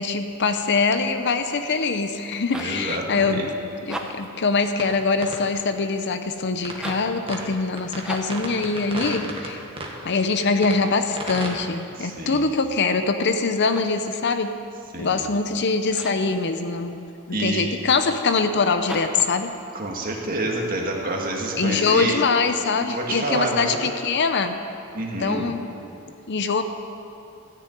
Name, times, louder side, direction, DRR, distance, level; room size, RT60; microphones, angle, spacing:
voice 1, 0.0-3.4 3.9-9.6 10.0-14.5 15.0-19.5 21.6-24.6 25.2-25.7 26.3-26.6, left 4 dB, 55° left, 8 dB, 0.7 m, -23 dB
sound 1, 2.5-2.8 3.8-4.4 6.7-7.1 8.0-8.5 13.5-14.1 15.9-16.3 18.8-19.3, equal, 5° right, 0.9 m, -36 dB
voice 2, 2.5-3.5 12.0-12.4 14.9-15.2 17.3-17.7 19.7-22.1 22.8-23.8 24.9-25.5, right 2 dB, 40° right, 0 dB, 1.8 m, -28 dB
sound 2, 4.8-4.9 5.2-5.4 6.6-7.0 7.3-7.4 7.8-9.5 9.8-9.9 10.6-10.8 11.1-11.5, right 2 dB, 25° right, 1.5 m, -32 dB
13.0 x 6.9 x 9.2 m, 2.7 s
head